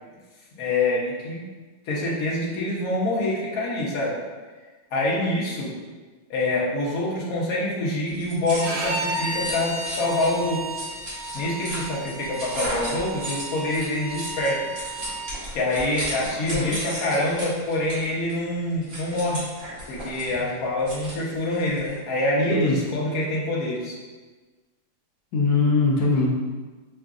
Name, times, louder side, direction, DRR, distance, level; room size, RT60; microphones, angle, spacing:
voice 1, 0.6-1.4 1.9-4.1 4.9-5.7 6.3-10.8 11.3-14.7 15.5-19.4 19.9-23.9, left 1 dB, 60° left, -4 dB, 1.2 m, -26 dB
sound 1, 8.1-22.0, equal, 45° right, 1.5 m, -36 dB
Bowed string instrument, 8.6-15.3, right 2 dB, 85° right, 0.7 m, -33 dB
voice 2, 16.5-16.8 20.4-20.5 22.5-22.8 25.3-26.3, left 3 dB, 80° left, -2 dB, 1.3 m, -21 dB
5.7 x 2.5 x 2.4 m, 1.3 s
omnidirectional pair, 2.0 m